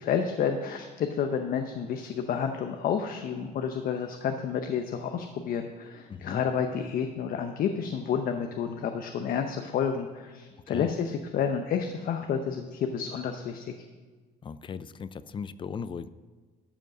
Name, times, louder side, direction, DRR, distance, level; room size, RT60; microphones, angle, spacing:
voice 1, 0.0-13.7, left 7 dB, 60° left, 6 dB, 0.7 m, -30 dB
voice 2, 6.1-6.4 10.7-10.9 14.4-16.1, left 6 dB, 30° left, 15 dB, 0.4 m, -37 dB
12.5 x 5.1 x 6.5 m, 1.4 s
cardioid pair, 110°, 17 cm